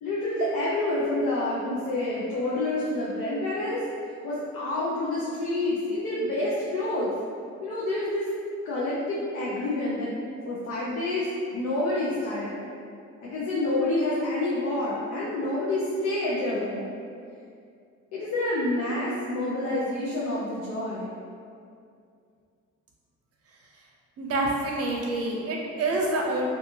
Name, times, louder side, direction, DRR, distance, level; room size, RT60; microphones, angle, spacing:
voice 1, 0.0-3.8 4.2-7.1 7.6-8.2 8.6-10.1 10.5-11.3 11.5-12.6 13.2-16.9 18.1-21.1, left 2 dB, 75° left, -7 dB, 0.6 m, -28 dB
voice 2, 24.2-26.5, right 2 dB, 50° right, -1 dB, 0.6 m, -27 dB
2.6 x 2.4 x 2.7 m, 2.3 s
cardioid pair, 90°, 30 cm